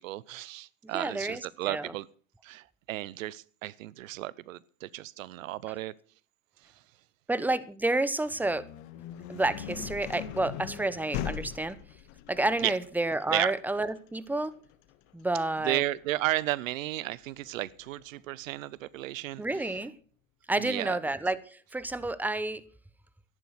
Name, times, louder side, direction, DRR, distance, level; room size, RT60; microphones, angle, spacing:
voice 1, 0.0-2.1 2.4-5.9 12.6-12.7 13.3-13.5 15.6-19.4 20.6-21.0, right 16 dB, 90° right, 0.7 m, -33 dB
voice 2, 0.8-1.9 5.7-5.8 7.3-8.7 9.3-11.8 12.3-14.5 15.1-15.8 19.4-19.9 20.5-22.6, right 2 dB, 5° right, 0.9 m, -30 dB
sound 1, 8.2-18.0, left 10 dB, 70° left, 1.8 m, -41 dB
13.5 x 11.0 x 6.0 m
hypercardioid pair, 95°, 38 cm